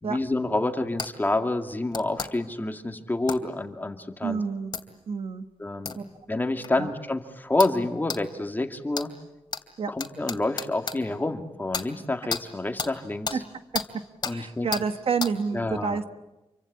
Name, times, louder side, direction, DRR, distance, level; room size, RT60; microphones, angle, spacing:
voice 1, 0.0-4.4 5.6-6.0 6.3-9.1 9.9-13.4 14.2-14.7 15.5-16.0, left 2 dB, 20° left, 5 dB, 2.2 m, -28 dB
sound 1, 1.0-1.1 1.9-2.3 3.3-3.4 4.7-4.8 5.9-6.0 6.6-6.7 7.6-7.8 8.1-8.2 8.9-9.1 9.5-9.6 10.0-11.0 11.7-11.9 12.3-12.4 12.8-12.9 13.3-13.4 13.7-13.9 14.2-14.4 14.7-14.9 15.2-15.3, left 5 dB, 45° left, 2.7 m, -31 dB
voice 2, 4.2-4.8 5.1-5.4 5.9-6.0 6.8-6.9 9.8-9.9 13.3-13.4 14.3-16.1, right 5 dB, 65° right, 9 dB, 1.4 m, -28 dB
28.0 x 24.5 x 8.7 m, 1.0 s
wide cardioid pair, 110°, 10 cm